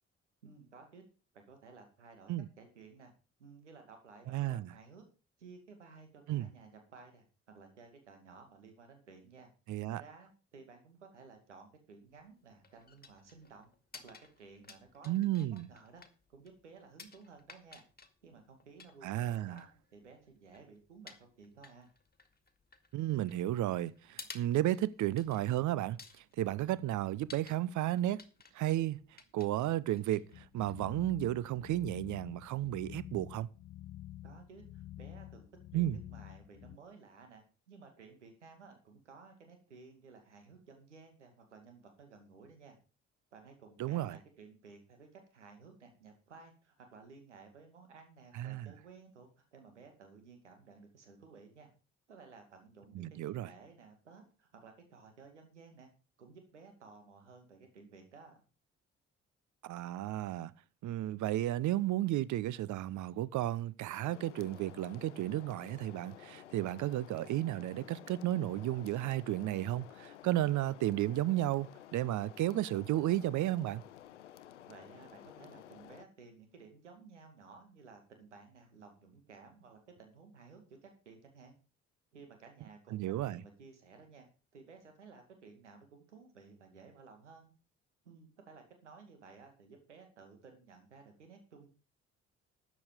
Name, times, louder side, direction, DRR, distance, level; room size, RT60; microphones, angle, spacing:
voice 1, 0.4-1.0 1.3-2.3 2.6-3.1 3.4-5.0 5.4-9.5 9.9-16.0 16.3-17.8 18.2-21.9 34.2-35.5 35.7-42.8 43.3-51.7 52.1-55.9 56.2-58.4 74.7-81.6 82.1-84.3 84.5-87.5 88.0-91.7, right 4 dB, 85° right, 2.3 m, -56 dB
voice 2, 4.3-4.7 6.3-6.5 9.7-10.0 15.1-15.7 19.0-19.6 22.9-28.2 28.5-29.0 29.3-33.5 35.7-36.0 43.8-44.2 48.3-48.7 52.9-53.5 59.6-60.5 60.8-73.8 82.9-83.4, right 14 dB, 55° right, 0.8 m, -33 dB
sound 1, 12.1-31.1, left 4 dB, 25° left, 2.1 m, -57 dB
sound 2, 30.3-36.8, left 14 dB, 55° left, 0.7 m, -49 dB
sound 3, 64.0-76.0, left 11 dB, 85° left, 0.6 m, -53 dB
13.0 x 8.7 x 5.1 m
figure-of-eight pair, 45°, 35 cm